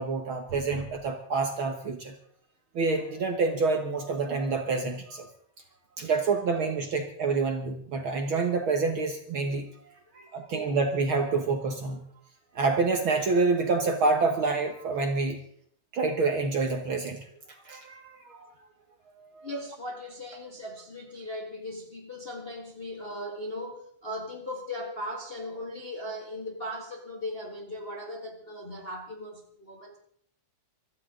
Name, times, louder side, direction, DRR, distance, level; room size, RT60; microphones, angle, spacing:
voice 1, 0.0-2.1 2.7-5.3 6.0-9.7 10.1-12.0 12.5-15.4 15.9-17.2 17.6-18.5 19.2-19.5, right 4 dB, 55° right, 1.7 m, -27 dB
voice 2, 19.4-30.0, left 1 dB, 25° left, 1.3 m, -38 dB
24.0 x 14.0 x 3.8 m
omnidirectional pair, 3.4 m